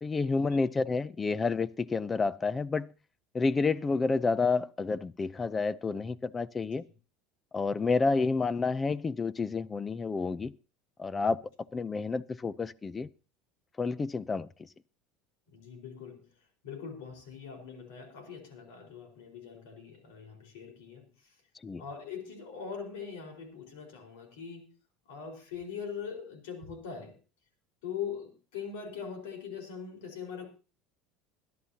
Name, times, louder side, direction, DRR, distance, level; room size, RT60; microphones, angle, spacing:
voice 1, 0.0-2.9 3.3-6.8 7.5-10.5 11.0-11.4 11.7-13.1 13.8-14.7 21.6-21.8, left 4 dB, 25° left, 0.5 m, -29 dB
voice 2, 15.5-16.2 16.6-21.1 21.8-24.7 25.1-27.1 27.8-30.5, left 7 dB, 80° left, 4.7 m, -42 dB
22.5 x 11.0 x 2.9 m
supercardioid pair, 95°, 0 cm